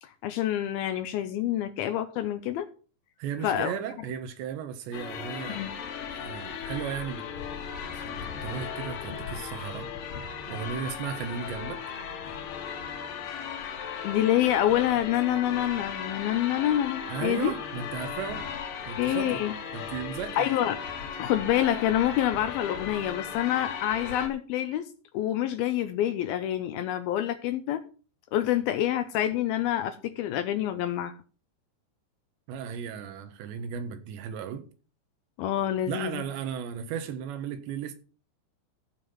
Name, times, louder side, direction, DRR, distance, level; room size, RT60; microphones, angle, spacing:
voice 1, 0.0-2.7 3.4-3.7 5.5-5.7 14.0-17.5 19.0-19.5 20.4-20.8 21.2-24.9 25.1-27.8 28.3-31.1 35.4-36.2, left 12 dB, 80° left, 2.4 m, -27 dB
voice 2, 3.2-5.7 6.1-7.3 7.9-9.9 10.5-11.9 17.1-18.5 18.9-19.5 19.7-20.5 32.5-34.7 35.9-38.0, right 8 dB, 90° right, 3.5 m, -35 dB
sound 1, 4.9-24.3, left 7 dB, 60° left, 2.9 m, -37 dB
14.5 x 5.4 x 5.7 m
omnidirectional pair, 4.9 m